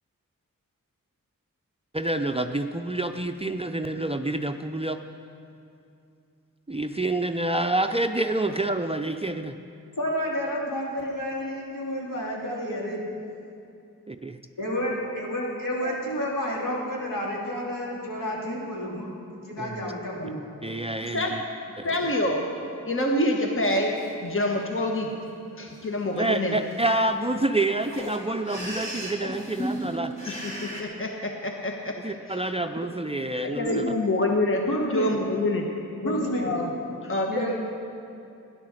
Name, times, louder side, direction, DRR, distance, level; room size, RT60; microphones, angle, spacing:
voice 1, 1.9-5.0 6.7-9.6 19.6-19.8 20.6-21.4 21.8-21.9 26.2-30.1 32.0-33.9, right 2 dB, 15° right, 6 dB, 0.5 m, -27 dB
voice 2, 10.0-13.0 14.6-19.1 19.4-20.4 33.6-33.8 34.6-35.1 36.0-36.5 37.3-37.7, equal, 65° left, -4 dB, 3.1 m, -30 dB
voice 3, 21.8-23.9 24.2-25.1 25.6-26.6 29.2-29.9 30.2-32.4 33.3-34.6 34.9-35.6 36.0-36.7 37.0-37.4, left 1 dB, 35° left, 1 dB, 1.3 m, -27 dB
sound 1, 24.0-24.1 24.6-25.0 25.7-25.9 26.2-26.3 26.4-30.8, equal, 20° left, 2.8 m, -39 dB
13.0 x 10.5 x 6.5 m, 2.6 s
wide cardioid pair, 55°, 35 cm